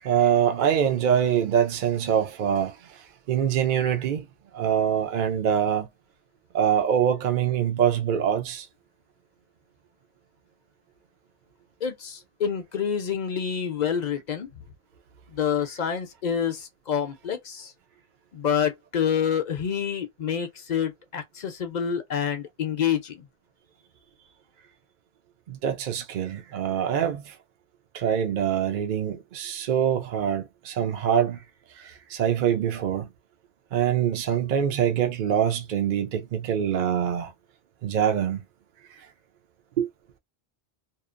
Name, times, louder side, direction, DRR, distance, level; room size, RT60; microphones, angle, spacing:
voice 1, 0.0-4.3 4.5-5.9 6.5-8.7 25.5-27.4 27.9-31.4 31.7-33.1 33.7-37.3 37.8-38.4 39.8-39.9, right 9 dB, 60° right, 0.6 m, -24 dB
voice 2, 11.8-14.5 15.3-17.7 18.3-23.2, left 8 dB, 50° left, 0.6 m, -27 dB
2.7 x 2.1 x 2.4 m
omnidirectional pair, 1.0 m